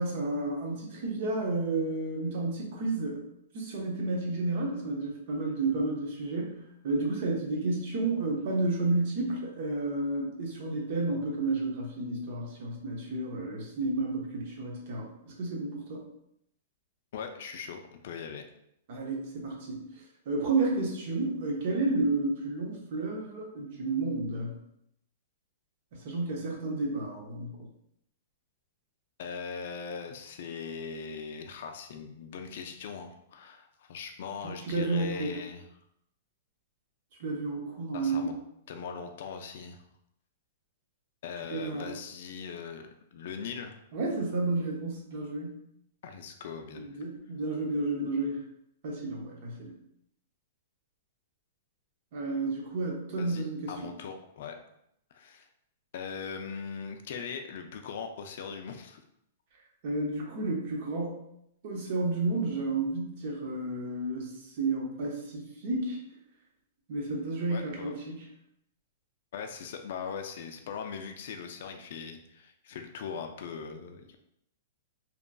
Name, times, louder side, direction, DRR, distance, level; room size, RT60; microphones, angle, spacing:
voice 1, 0.0-3.3 3.5-16.0 18.9-19.8 20.3-24.6 25.9-27.6 34.4-35.3 37.2-38.3 41.5-41.9 43.9-45.6 46.7-48.4 48.8-49.8 52.1-53.9 59.8-61.2 61.6-66.0 66.9-68.2, right 2 dB, 50° right, 0 dB, 0.8 m, -31 dB
voice 2, 17.1-18.4 29.2-35.6 37.9-38.3 38.7-39.8 41.2-42.8 43.1-43.8 46.0-47.0 53.2-54.6 55.1-55.5 55.9-59.0 67.5-67.9 69.3-74.2, left 6 dB, 60° left, 5 dB, 0.3 m, -40 dB
2.9 x 2.5 x 2.2 m, 0.76 s
hypercardioid pair, 155°, 0 cm